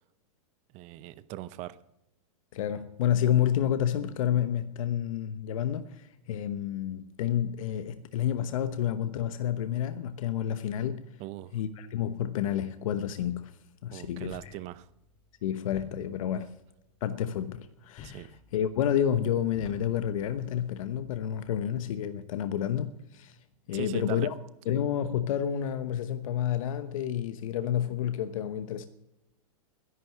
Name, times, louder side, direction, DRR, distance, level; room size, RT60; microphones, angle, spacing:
voice 1, 0.7-1.8 11.2-11.5 13.9-14.9 16.3-16.4 18.0-18.3 23.7-24.3, right 15 dB, 40° right, 0.8 m, -40 dB
voice 2, 2.5-11.1 11.5-13.6 13.8-14.5 15.4-16.5 17.0-23.4 23.7-24.3 24.7-28.9, left 10 dB, 70° left, 1.0 m, -30 dB
sound 1, 14.2-21.6, left 6 dB, 35° left, 2.3 m, -53 dB
12.5 x 11.0 x 7.4 m
hypercardioid pair, 125°, 18 cm